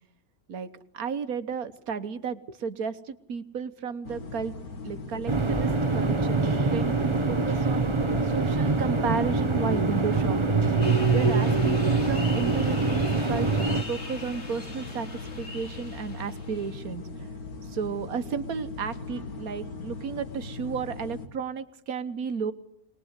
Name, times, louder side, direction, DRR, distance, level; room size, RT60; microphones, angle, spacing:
voice 1, 0.5-4.5 4.8-7.9 8.2-10.7 11.1-15.1 15.4-17.1 17.7-22.5, right 6 dB, 80° right, 12 dB, 1.6 m, -33 dB
sound 1, 4.0-21.3, left 3 dB, 85° left, 2.6 m, -39 dB
sound 2, 5.3-13.8, right 3 dB, 20° right, 1.1 m, -24 dB
sound 3, 10.8-16.9, left 2 dB, 50° left, 2.9 m, -42 dB
22.5 x 20.5 x 8.2 m, 0.72 s
omnidirectional pair, 1.5 m